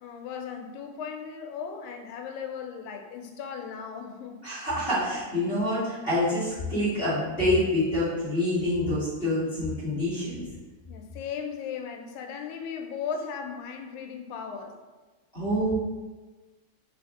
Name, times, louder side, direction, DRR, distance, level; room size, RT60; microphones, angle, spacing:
voice 1, 0.0-4.5 10.9-14.7, left 6 dB, 85° left, 4 dB, 1.9 m, -37 dB
voice 2, 4.4-10.4 15.3-15.7, left 1 dB, 30° left, -12 dB, 1.1 m, -26 dB
4.5 x 2.6 x 3.5 m, 1.3 s
omnidirectional pair, 3.4 m